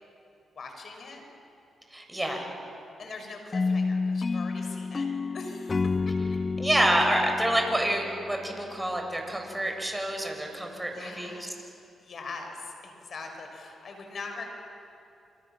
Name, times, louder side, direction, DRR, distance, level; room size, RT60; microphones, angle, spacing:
voice 1, 0.5-1.2 2.2-2.6 3.0-5.1 5.3-6.1 10.9-11.6 12.0-14.5, left 3 dB, 60° left, 3 dB, 6.4 m, -42 dB
voice 2, 1.9-2.4 6.6-11.5, right 1 dB, 15° right, 3 dB, 7.4 m, -27 dB
sound 1, 3.5-8.7, left 4 dB, 40° left, 0.6 m, -30 dB
28.0 x 26.0 x 7.4 m, 2.6 s
hypercardioid pair, 45°, 0 cm